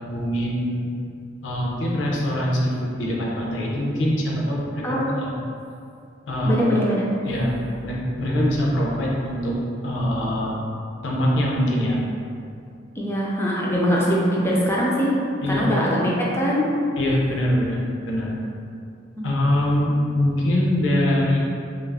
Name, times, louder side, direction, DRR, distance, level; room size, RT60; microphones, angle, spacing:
voice 1, 0.0-0.9 1.4-5.3 6.3-6.6 7.3-9.6 9.8-10.5 11.0-12.0 15.4-15.6 17.0-18.3 19.2-21.4, left 1 dB, 75° left, -4 dB, 0.5 m, -23 dB
voice 2, 4.8-5.1 6.4-7.0 13.0-15.2 15.5-16.6 19.2-19.3, equal, 15° left, -5 dB, 0.3 m, -22 dB
2.3 x 2.0 x 3.3 m, 2.4 s
head